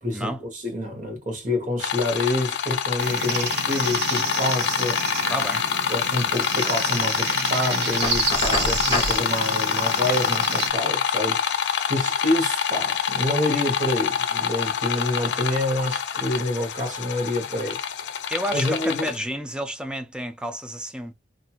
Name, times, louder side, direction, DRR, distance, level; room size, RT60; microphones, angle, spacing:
voice 1, 0.0-5.3 5.9-11.5 11.9-18.1 18.5-19.1, left 1 dB, 45° right, 1.1 m, -27 dB
sound 1, 1.8-19.2, left 7 dB, 75° left, 0.5 m, -26 dB
sound 2, 3.0-10.7, right 4 dB, 65° right, 0.8 m, -30 dB
voice 2, 5.3-5.6 18.3-21.1, equal, 5° right, 0.3 m, -30 dB
Knock, 8.0-9.2, left 2 dB, 30° left, 0.9 m, -27 dB
2.9 x 2.5 x 2.4 m
head